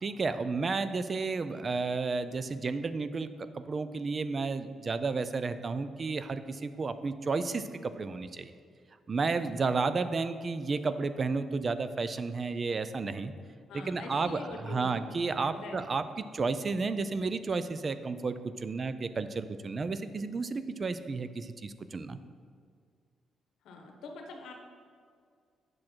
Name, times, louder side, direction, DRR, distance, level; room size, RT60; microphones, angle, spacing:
voice 1, 0.0-8.5 9.1-13.3 13.7-16.0 16.3-22.2, right 4 dB, 30° right, 12 dB, 0.3 m, -32 dB
voice 2, 13.7-15.0 15.4-16.0 23.6-24.5, left 3 dB, 80° left, 2 dB, 1.1 m, -44 dB
8.5 x 6.2 x 4.5 m, 2.1 s
cardioid pair, 155°, 0 cm